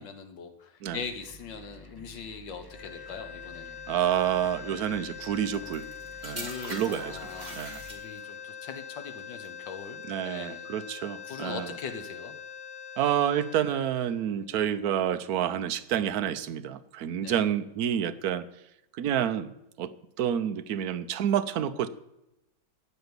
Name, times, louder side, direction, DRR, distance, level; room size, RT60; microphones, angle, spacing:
voice 1, 0.0-3.8 6.2-10.0 10.2-10.7 11.3-12.4 17.2-17.5, left 6 dB, 85° left, 8 dB, 1.9 m, -41 dB
sound 1, 0.9-7.9, right 1 dB, 20° left, 0.5 m, -51 dB
sound 2, 2.7-14.9, left 8 dB, 45° left, 1.1 m, -43 dB
voice 2, 3.9-5.9 6.2-7.2 7.5-7.8 10.1-11.7 13.0-18.4 18.9-19.5 19.8-21.9, right 10 dB, 60° right, 10 dB, 1.2 m, -29 dB
sound 3, 5.3-8.4 9.2-9.5, right 2 dB, 25° right, 2.4 m, -43 dB
15.0 x 5.2 x 9.7 m, 0.87 s
omnidirectional pair, 2.0 m